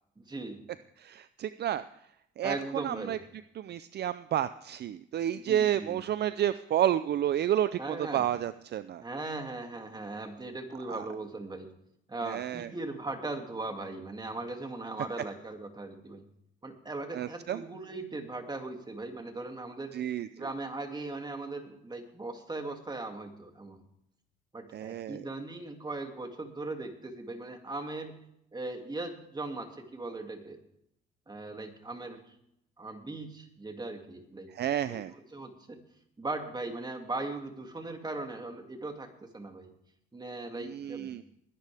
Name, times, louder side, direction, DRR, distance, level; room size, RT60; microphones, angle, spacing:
voice 1, 0.2-0.6 2.4-3.2 5.4-6.0 7.8-8.3 9.0-11.7 12.1-16.3 16.6-20.0 20.4-23.8 24.5-28.2 28.5-30.6 31.3-32.3 32.8-34.5 34.9-35.8 36.2-39.1 39.3-39.7 40.1-41.2, right 2 dB, 20° right, 4 dB, 2.5 m, -39 dB
voice 2, 1.0-1.8 2.4-2.6 2.8-3.2 3.6-9.0 10.9-11.0 12.3-12.7 17.1-17.6 19.9-20.3 24.7-25.2 34.5-35.1 40.6-41.2, right 11 dB, 55° right, 13 dB, 0.5 m, -30 dB
20.5 x 11.0 x 3.5 m, 0.77 s
cardioid pair, 90°, 20 cm